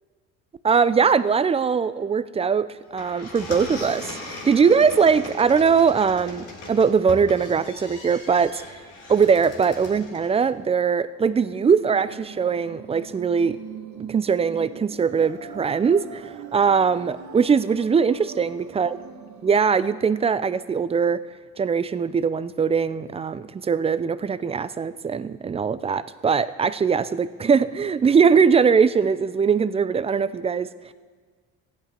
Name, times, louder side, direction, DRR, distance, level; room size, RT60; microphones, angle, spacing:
voice 1, 0.6-2.7 2.9-8.8 9.1-13.6 14.0-19.0 19.4-21.2 21.6-30.7, right 6 dB, 20° right, 15 dB, 0.4 m, -21 dB
sound 1, 2.8-10.4, left 2 dB, 70° left, 3.7 m, -39 dB
sound 2, 11.8-19.8, right 8 dB, 65° right, 1.2 m, -42 dB
14.5 x 10.5 x 4.4 m, 1.5 s
supercardioid pair, 95°, 31 cm